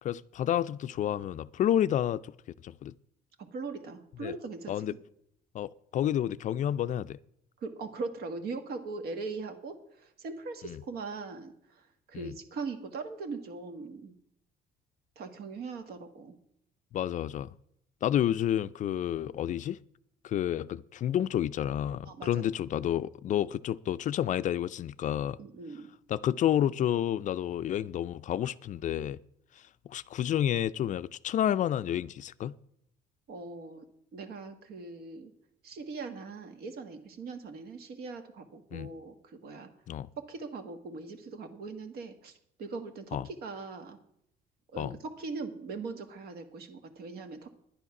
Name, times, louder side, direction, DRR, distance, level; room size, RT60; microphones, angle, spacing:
voice 1, 0.0-2.3 2.6-2.9 4.2-4.3 4.7-4.9 5.5-7.2 10.6-10.8 12.1-12.3 16.9-17.5 18.0-19.8 20.2-25.4 26.1-29.2 29.9-32.5 38.7-38.9 39.9-40.1 43.1-43.3 44.8-44.9, left 11 dB, 50° left, 0.4 m, -30 dB
voice 2, 3.4-4.8 7.6-14.1 15.1-16.4 22.0-22.5 25.4-25.9 33.3-33.8 34.1-35.3 35.6-39.7 40.2-44.0 44.7-47.5, right 4 dB, 70° right, 1.6 m, -40 dB
10.5 x 9.8 x 5.9 m
cardioid pair, 110°, 17 cm